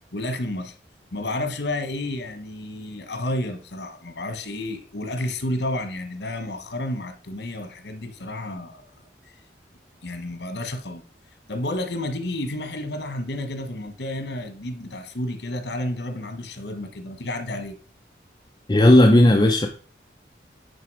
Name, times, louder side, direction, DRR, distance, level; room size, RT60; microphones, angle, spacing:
voice 1, 0.1-0.7 1.1-8.9 10.0-11.0 11.5-17.7, left 1 dB, 80° left, 9 dB, 1.4 m, -31 dB
voice 2, 18.7-19.7, left 1 dB, 25° left, 3 dB, 0.7 m, -14 dB
9.6 x 4.7 x 4.8 m, 0.40 s
head